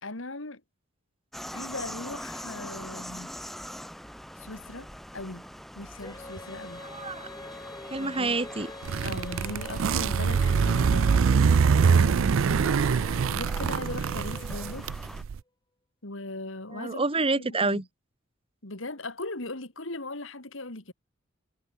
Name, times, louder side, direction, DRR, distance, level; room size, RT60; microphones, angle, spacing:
voice 1, 0.0-0.6 1.5-3.3 4.4-5.5 5.7-6.8 8.0-8.4 9.0-11.4 11.9-12.8 13.3-14.9 16.0-17.0 17.4-17.8 18.6-20.9, left 2 dB, 70° left, 3.1 m, -39 dB
sound 1, 1.3-15.2, equal, ahead, 3.2 m, -43 dB
Female singing, 6.0-15.1, left 2 dB, 20° left, 2.9 m, -45 dB
voice 2, 6.8-7.3 7.9-8.7 16.7-17.8, right 3 dB, 30° right, 2.0 m, -28 dB
sound 2, 8.8-15.4, right 6 dB, 80° right, 0.4 m, -24 dB
head